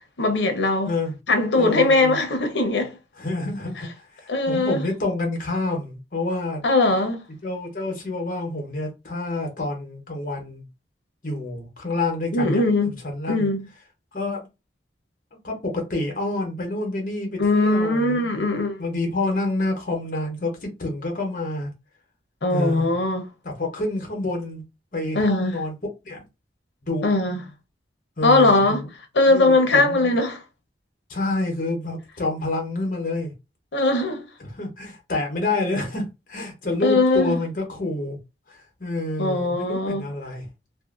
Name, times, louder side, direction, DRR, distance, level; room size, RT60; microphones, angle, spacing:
voice 1, 0.2-0.9 1.3-2.9 4.3-4.9 6.6-7.2 12.3-12.9 13.3-13.6 17.4-18.8 22.4-23.3 25.1-25.5 27.0-27.4 28.2-28.8 29.1-30.4 33.7-34.2 36.8-37.4 39.2-40.0, left 2 dB, 80° left, 0.8 m, -20 dB
voice 2, 1.6-2.2 3.2-6.6 7.4-10.6 11.2-13.5 14.1-14.5 15.4-18.4 18.8-21.7 22.5-22.9 23.4-24.6 24.9-25.7 26.0-26.2 26.8-27.1 28.2-28.9 29.3-30.2 31.1-33.3 34.4-38.2 38.5-40.5, left 2 dB, 50° left, 1.0 m, -28 dB
2.6 x 2.5 x 2.5 m
head